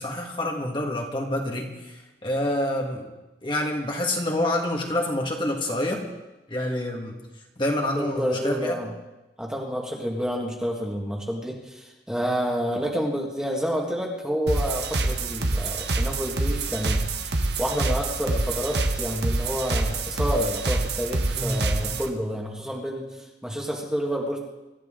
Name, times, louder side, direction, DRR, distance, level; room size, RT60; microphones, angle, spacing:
voice 1, 0.0-3.1 3.4-6.0 6.5-7.1 7.6-8.8 21.3-21.6 21.9-22.0, left 1 dB, 30° left, 0 dB, 1.8 m, -27 dB
voice 2, 8.0-8.9 9.4-24.4, equal, 5° right, -1 dB, 1.9 m, -29 dB
sound 1, 14.5-22.1, right 2 dB, 70° right, 1.3 m, -26 dB
25.5 x 13.5 x 3.8 m, 1.0 s
head